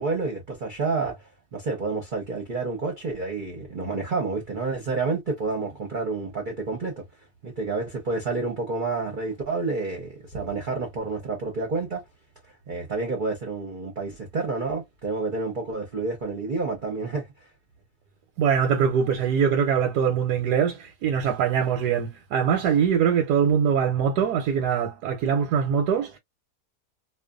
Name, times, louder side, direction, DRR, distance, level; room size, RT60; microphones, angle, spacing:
voice 1, 0.0-7.1 7.4-12.0 12.7-17.3, right 3 dB, 40° right, 0.7 m, -29 dB
voice 2, 18.4-26.2, right 7 dB, 90° right, 1.2 m, -23 dB
2.5 x 2.3 x 2.3 m
omnidirectional pair, 1.7 m